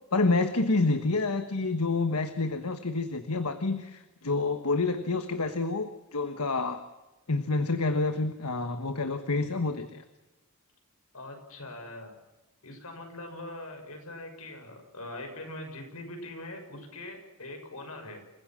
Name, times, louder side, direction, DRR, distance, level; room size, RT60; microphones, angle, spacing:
voice 1, 0.1-6.8 7.3-10.0, left 3 dB, 90° left, 9 dB, 1.4 m, -28 dB
voice 2, 11.1-12.1 12.6-18.2, left 1 dB, 75° left, 4 dB, 6.4 m, -42 dB
28.5 x 16.5 x 7.5 m, 1.1 s
head